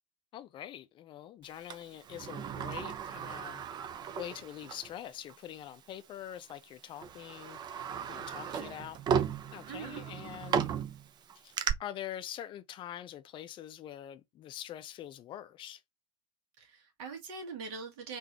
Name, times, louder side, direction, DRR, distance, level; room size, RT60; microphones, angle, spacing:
voice 1, 0.3-3.6 4.2-7.6 8.1-9.0 9.5-10.7 11.4-11.5 11.8-15.8, left 11 dB, 30° left, 0.5 m, -44 dB
Sliding door, 1.7-4.9 5.3-5.4 6.3-6.5 7.0-11.7, right 7 dB, 30° right, 0.6 m, -35 dB
voice 2, 9.7-10.0 16.6-18.2, right 4 dB, 55° right, 1.7 m, -42 dB
3.9 x 2.7 x 3.0 m
figure-of-eight pair, 80°, 16 cm